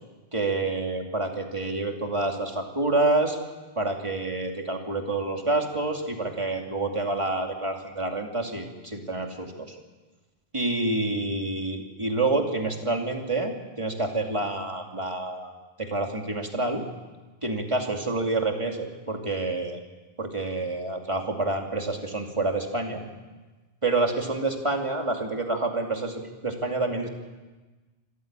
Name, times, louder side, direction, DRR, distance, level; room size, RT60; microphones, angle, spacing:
voice 1, 0.3-3.4 3.8-9.7 10.5-15.5 15.8-16.8 17.4-19.8 20.2-23.0 23.8-27.1, right 2 dB, 25° right, 2 dB, 2.6 m, -28 dB
25.0 x 14.5 x 8.9 m, 1.2 s
omnidirectional pair, 1.2 m